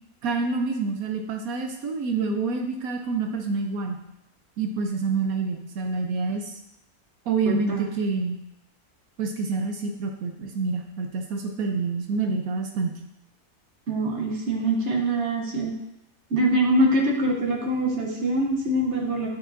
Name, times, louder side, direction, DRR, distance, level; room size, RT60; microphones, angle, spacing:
voice 1, 0.2-4.0 4.6-6.6 7.3-8.4 9.2-13.0, right 4 dB, 70° right, 3 dB, 1.1 m, -27 dB
voice 2, 7.5-7.9 13.9-15.7 16.3-19.3, right 1 dB, 50° right, 1 dB, 1.3 m, -24 dB
8.6 x 5.1 x 2.6 m, 0.85 s
omnidirectional pair, 1.6 m